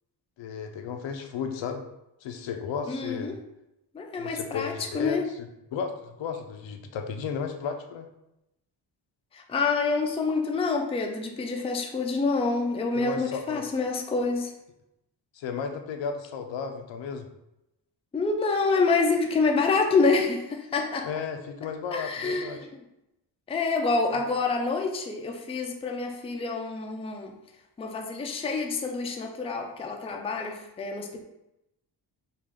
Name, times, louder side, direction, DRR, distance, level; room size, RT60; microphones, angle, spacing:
voice 1, 0.4-1.8 2.2-3.3 4.2-5.2 5.7-8.1 12.9-13.6 15.3-17.3 21.0-22.7 24.2-24.3, left 6 dB, 85° left, 5 dB, 0.7 m, -34 dB
voice 2, 2.9-3.4 3.9-5.2 9.3-14.5 18.1-21.1 21.9-22.7 23.5-27.3 27.8-31.1, left 4 dB, 15° left, 2 dB, 0.4 m, -27 dB
5.2 x 2.4 x 3.7 m, 0.88 s
wide cardioid pair, 145°, 44 cm